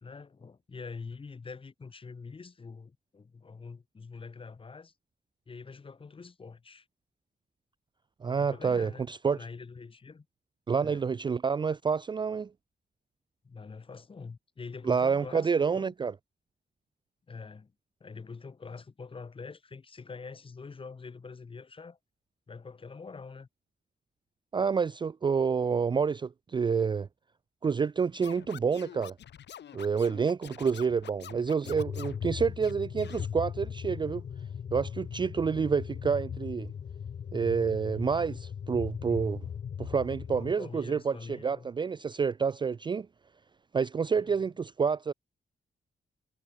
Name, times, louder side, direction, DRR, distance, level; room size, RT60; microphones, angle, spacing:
voice 1, 0.0-4.9 5.5-6.9 8.3-10.3 10.8-11.1 13.4-15.9 17.3-17.7 18.0-22.0 22.5-23.5 30.6-30.8 40.3-41.7 44.2-44.3, left 4 dB, 30° left, 3.7 m, -45 dB
voice 2, 8.2-9.4 10.7-12.5 14.9-16.1 24.5-27.1 27.6-29.1 29.7-34.2 34.7-36.7 37.3-39.5 39.8-43.1 43.7-45.1, right 6 dB, 25° right, 0.4 m, -28 dB
Scratching (performance technique), 28.2-32.2 32.6-33.2, left 10 dB, 85° left, 1.8 m, -47 dB
sound 1, 31.7-40.5, left 7 dB, 45° left, 0.8 m, -38 dB
wide cardioid pair, 175°, 17 cm